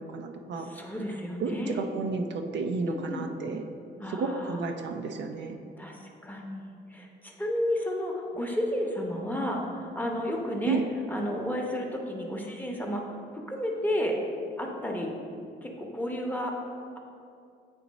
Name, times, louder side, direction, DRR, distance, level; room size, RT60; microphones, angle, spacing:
voice 1, 0.0-0.7 1.4-3.6 4.1-5.6 10.7-10.8, right 4 dB, 65° right, 4 dB, 0.5 m, -32 dB
voice 2, 0.6-1.8 2.9-3.3 4.0-4.6 5.8-10.8 11.1-13.0 13.3-14.2 14.6-15.1 15.6-16.6, equal, 10° left, 0 dB, 0.8 m, -32 dB
8.3 x 2.9 x 4.0 m, 2.4 s
cardioid pair, 90°, 20 cm